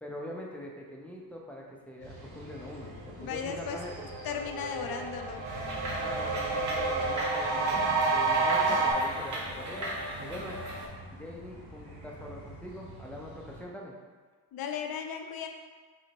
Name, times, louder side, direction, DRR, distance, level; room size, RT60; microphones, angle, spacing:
voice 1, 0.0-4.1 6.0-9.9 10.2-10.6 11.1-13.9, left 1 dB, 5° left, -2 dB, 0.5 m, -43 dB
sound 1, 2.0-13.6, equal, 60° right, 1.5 m, -48 dB
sound 2, 3.1-3.2 3.6-8.9, right 3 dB, 80° right, 0.6 m, -30 dB
voice 2, 3.2-3.8 4.2-5.4 14.5-15.5, left 7 dB, 55° left, 5 dB, 0.5 m, -36 dB
sound 3, 5.4-10.9, right 1 dB, 45° right, 1.0 m, -37 dB
4.3 x 2.1 x 2.9 m, 1.5 s
cardioid pair, 85°, 43 cm